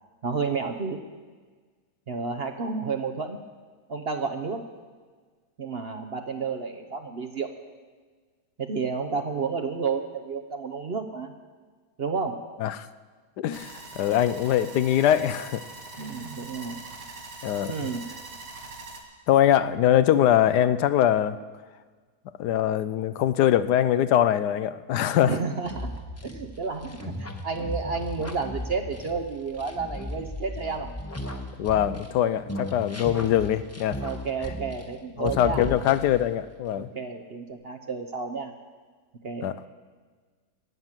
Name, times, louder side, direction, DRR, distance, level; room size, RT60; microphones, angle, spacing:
voice 1, 0.2-1.0 2.1-3.4 3.9-4.6 5.6-7.5 8.6-11.3 12.0-12.5 16.0-16.8 17.7-18.1 25.3-25.9 26.2-30.9 34.0-35.7 36.8-38.5 39.2-39.5, right 5 dB, 45° right, 5 dB, 0.9 m, -31 dB
voice 2, 13.4-15.6 17.4-17.7 19.3-21.4 22.4-25.4 31.6-34.0 35.2-36.9 39.4-39.6, left 11 dB, 80° left, 13 dB, 1.2 m, -22 dB
sound 1, 13.5-19.0, right 2 dB, 85° right, 2.1 m, -42 dB
sound 2, 25.6-32.2 32.5-35.0 35.2-36.3, equal, 10° left, 0.9 m, -36 dB
17.5 x 7.9 x 7.4 m, 1.5 s
omnidirectional pair, 1.8 m